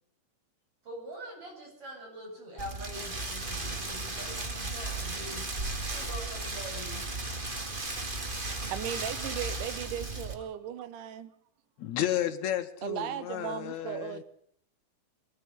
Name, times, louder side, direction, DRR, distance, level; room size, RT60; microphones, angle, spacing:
voice 1, 0.8-7.2, equal, 45° right, 8.8 m, -44 dB
Rain, 2.6-10.3, right 2 dB, 20° right, 1.7 m, -35 dB
voice 2, 8.7-11.3 12.8-14.2, right 10 dB, 90° right, 2.6 m, -37 dB
voice 3, 11.8-14.2, left 11 dB, 70° left, 2.3 m, -32 dB
23.5 x 11.5 x 10.0 m
omnidirectional pair, 3.6 m